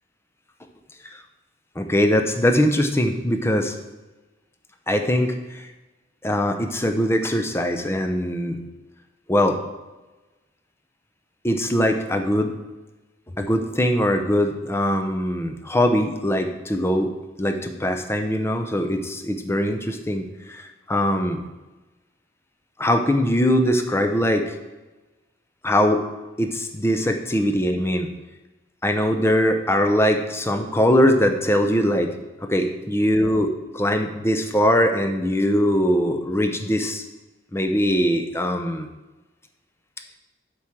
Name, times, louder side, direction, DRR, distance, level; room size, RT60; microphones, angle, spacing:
voice 1, 1.8-3.7 4.9-5.3 6.2-8.6 9.3-9.6 11.4-12.5 13.4-17.1 17.4-20.3 20.9-21.4 22.8-24.6 25.6-26.0 26.4-28.1 28.8-32.1 32.4-37.0 37.5-38.9, equal, 15° left, 5 dB, 0.6 m, -21 dB
8.0 x 4.6 x 7.3 m, 1.1 s
head